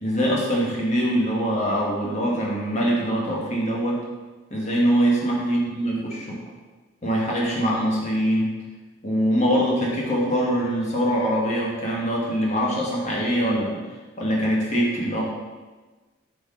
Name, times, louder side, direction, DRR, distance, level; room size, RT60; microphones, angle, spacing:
voice 1, 0.0-4.0 4.5-6.4 7.0-8.5 9.0-13.8 14.2-15.2, equal, 35° left, -3 dB, 1.5 m, -23 dB
7.9 x 4.7 x 3.8 m, 1.3 s
head